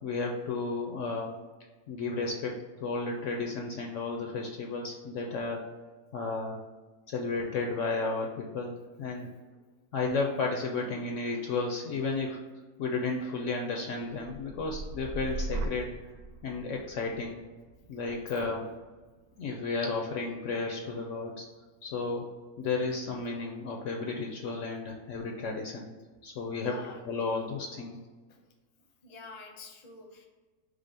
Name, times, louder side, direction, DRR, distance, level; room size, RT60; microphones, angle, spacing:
voice 1, 0.0-1.3 1.9-5.6 6.1-6.6 7.1-9.3 9.9-12.4 12.8-15.9 16.4-17.4 17.9-18.7 19.4-21.4 21.8-22.3 22.6-25.9 26.2-26.7 27.1-28.0, left 3 dB, 65° left, 1 dB, 0.8 m, -33 dB
sound 1, 14.1-21.9 22.4-22.8, right 2 dB, 70° right, 0.6 m, -41 dB
voice 2, 18.3-18.8 24.8-24.9 26.5-27.1 28.3-28.4 29.0-30.2, left 3 dB, 35° left, 1 dB, 0.6 m, -48 dB
5.1 x 2.0 x 4.7 m, 1.3 s
omnidirectional pair, 1.6 m